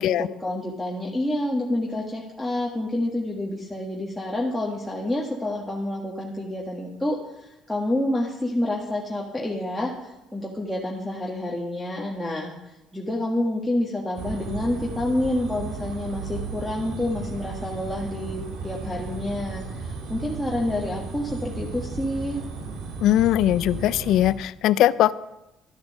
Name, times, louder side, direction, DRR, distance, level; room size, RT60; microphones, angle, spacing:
voice 1, 0.0-12.5 12.9-22.4, left 1 dB, 5° left, -4 dB, 1.6 m, -28 dB
sound 1, 14.1-24.3, right 4 dB, 80° right, 1.8 m, -35 dB
voice 2, 23.0-25.1, left 13 dB, 75° left, 17 dB, 0.4 m, -20 dB
12.5 x 7.1 x 6.5 m, 0.94 s
cardioid pair, 90°, 0 cm